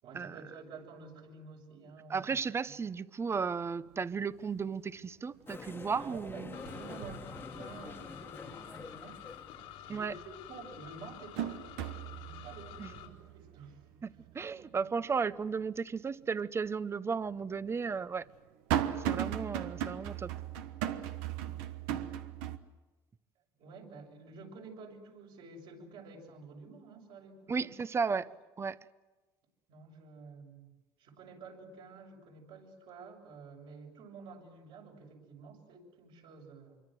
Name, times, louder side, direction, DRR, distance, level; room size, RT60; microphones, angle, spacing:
voice 1, 0.0-2.4 2.6-2.7 6.0-9.2 9.9-11.8 12.2-14.1 23.6-27.7 29.7-30.7 31.0-36.8, right 4 dB, 70° right, 7.1 m, -50 dB
voice 2, 2.1-6.5 9.9-10.1 12.8-12.9 14.0-18.3 19.0-20.3 27.5-28.3 28.6-28.8, right 5 dB, 25° right, 0.8 m, -34 dB
sound 1, 3.4-3.5 3.9-4.4 4.8-5.6 5.9-8.1 8.5-8.6 10.1-10.2 10.7-15.8 16.2-16.3 17.2-22.6, right 10 dB, 90° right, 1.3 m, -38 dB
sound 2, 5.5-9.8, left 4 dB, 25° left, 1.5 m, -47 dB
sound 3, 6.5-13.1, left 11 dB, 90° left, 4.0 m, -50 dB
25.5 x 24.0 x 7.8 m
supercardioid pair, 95°, 10 cm